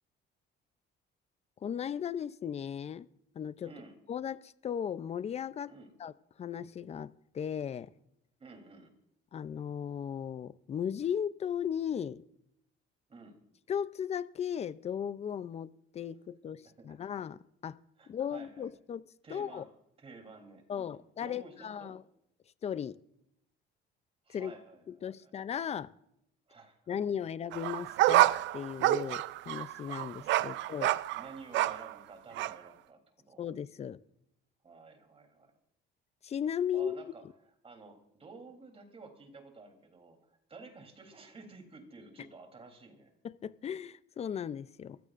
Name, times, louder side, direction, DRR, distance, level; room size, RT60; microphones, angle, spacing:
voice 1, 1.6-3.1 3.4-3.7 4.1-5.7 6.0-6.1 6.4-7.9 9.3-12.2 13.7-17.8 18.1-19.0 19.3-19.6 20.7-22.0 22.6-23.0 24.3-24.5 24.9-25.9 26.9-30.9 33.4-34.0 36.2-37.0 43.2-45.0, left 8 dB, 30° left, 0.5 m, -36 dB
voice 2, 3.6-4.0 5.7-5.9 8.4-8.9 13.1-13.3 16.6-17.1 18.0-18.7 19.2-19.7 20.0-22.0 24.2-25.3 26.5-27.0 30.4-30.6 31.1-33.0 33.2-33.4 34.6-35.5 36.7-43.1, right 3 dB, 30° right, 3.4 m, -52 dB
sound 1, 27.5-31.9 32.4-32.5, right 15 dB, 65° right, 0.4 m, -28 dB
23.5 x 16.0 x 2.5 m
cardioid pair, 125°, 20 cm